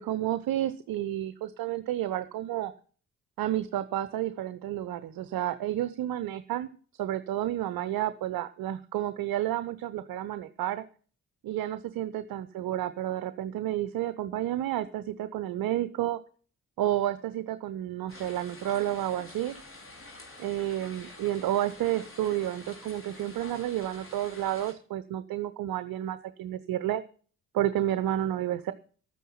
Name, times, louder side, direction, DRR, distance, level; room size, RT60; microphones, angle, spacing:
voice 1, 0.0-2.7 3.4-10.8 11.4-16.2 16.8-19.5 20.4-27.0 27.5-28.7, right 13 dB, 55° right, 13 dB, 0.8 m, -31 dB
sound 1, 18.1-24.7, left 2 dB, 30° left, 3.9 m, -48 dB
12.5 x 9.2 x 5.7 m, 0.42 s
figure-of-eight pair, 40°, 41 cm